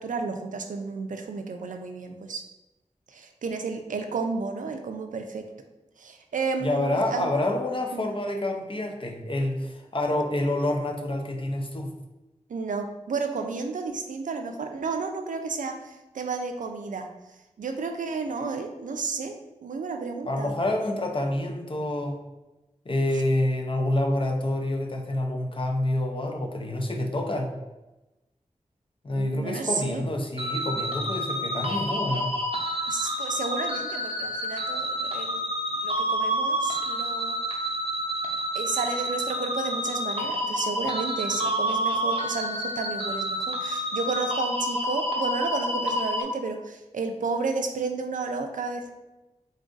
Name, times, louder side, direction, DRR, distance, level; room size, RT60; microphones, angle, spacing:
voice 1, 0.0-2.4 3.1-5.5 6.0-7.3 7.9-8.1 12.5-17.1 17.6-19.3 19.6-20.5 29.1-30.0 32.9-35.4 35.7-37.4 38.5-48.9, right 4 dB, 90° right, 5 dB, 0.4 m, -32 dB
voice 2, 6.6-11.9 20.3-22.2 22.9-27.5 29.0-32.3, left 1 dB, 45° left, 3 dB, 0.6 m, -27 dB
sound 1, 30.4-46.2, equal, 50° right, 0.7 m, -29 dB
3.8 x 2.5 x 3.8 m, 1.0 s
wide cardioid pair, 60°, 13 cm